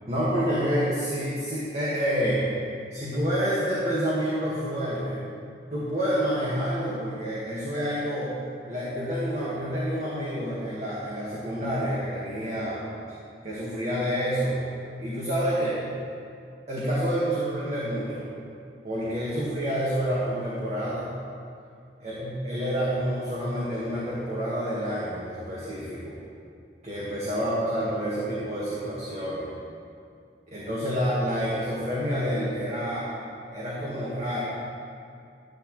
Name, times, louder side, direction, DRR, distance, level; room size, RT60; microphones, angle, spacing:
voice 1, 0.1-2.5 2.9-5.2 5.7-8.3 8.7-12.8 13.4-14.6 15.0-15.8 16.7-18.3 18.8-21.1 22.0-26.2 26.8-29.5 30.5-33.1 33.5-34.4, equal, 40° right, -8 dB, 1.8 m, -28 dB
12.5 x 11.0 x 3.2 m, 2.4 s
head